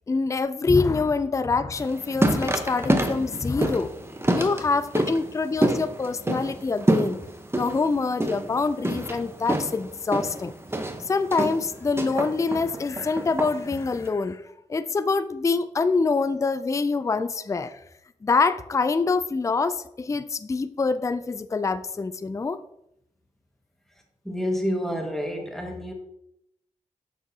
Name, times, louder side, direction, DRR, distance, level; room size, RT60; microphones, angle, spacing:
voice 1, 0.1-3.9 4.3-7.2 7.6-10.5 11.1-14.4 14.7-17.8 18.2-22.6, left 4 dB, 20° left, 13 dB, 0.3 m, -25 dB
sound 1, 1.8-14.1, right 1 dB, 15° right, 0.9 m, -28 dB
voice 2, 24.2-25.9, equal, 5° left, 2 dB, 1.6 m, -28 dB
6.4 x 5.9 x 2.8 m, 0.78 s
cardioid pair, 45°, 14 cm